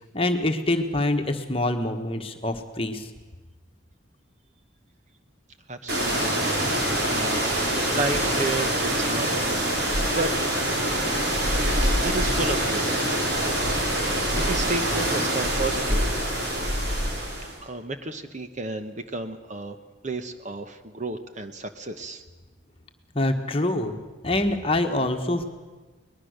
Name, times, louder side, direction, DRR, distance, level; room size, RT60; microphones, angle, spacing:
voice 1, 0.1-3.1 23.1-25.4, left 1 dB, 30° left, 6 dB, 1.5 m, -25 dB
voice 2, 5.7-6.9 7.1-9.8 10.1-10.3 12.0-13.3 14.4-16.0 17.6-19.8 20.0-22.2, right 2 dB, 35° right, 8 dB, 1.1 m, -32 dB
sound 1, 5.9-17.6, right 1 dB, 55° right, 4.2 m, -25 dB
23.0 x 20.0 x 6.6 m, 1.3 s
head